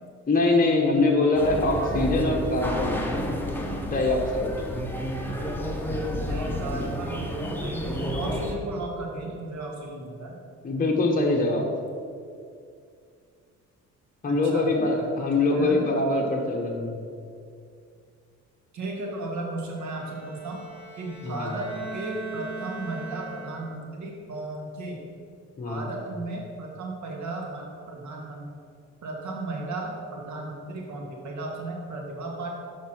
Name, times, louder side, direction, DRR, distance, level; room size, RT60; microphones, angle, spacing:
voice 1, 0.3-3.0 3.8-4.5 10.6-11.7 14.2-17.0 21.2-21.5 25.6-25.8, left 2 dB, 30° left, 0 dB, 1.1 m, -23 dB
sound 1, 1.4-8.6, equal, 5° left, 1.1 m, -30 dB
voice 2, 6.3-10.3 10.8-10.9 14.2-14.8 15.2-15.8 18.7-20.6 20.9-25.0 25.6-28.5 29.0-32.5, right 2 dB, 70° right, 0 dB, 1.9 m, -35 dB
Bowed string instrument, 19.7-23.9, right 2 dB, 20° right, 2.2 m, -40 dB
6.5 x 5.5 x 6.2 m, 2.3 s
cardioid pair, 90°, 30 cm